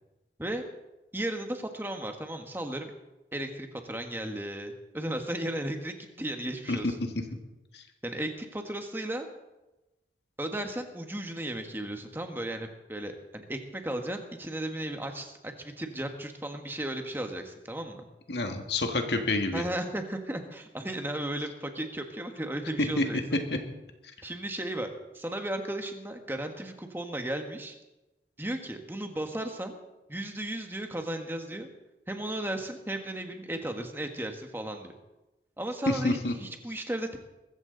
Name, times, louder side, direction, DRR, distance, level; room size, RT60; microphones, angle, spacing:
voice 1, 1.1-2.9 3.3-7.0 8.0-9.3 10.4-18.1 19.5-23.2 24.2-27.8 28.4-29.8 30.1-31.7 32.1-34.9 35.6-37.2, right 1 dB, 10° right, 5 dB, 1.4 m, -35 dB
voice 2, 18.3-19.6 23.0-23.1 35.9-36.3, left 2 dB, 80° left, 4 dB, 1.9 m, -28 dB
21.5 x 14.5 x 4.0 m, 1.0 s
head